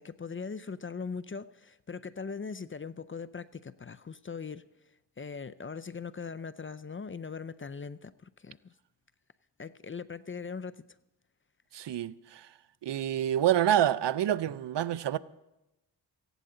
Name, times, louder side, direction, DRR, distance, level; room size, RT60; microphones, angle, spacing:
voice 1, 0.0-4.6 5.2-8.7 9.6-10.8, left 5 dB, 30° left, 0.5 m, -40 dB
voice 2, 11.7-12.5 12.8-15.2, right 11 dB, 70° right, 0.6 m, -27 dB
18.5 x 15.5 x 3.8 m
cardioid pair, 65°, 44 cm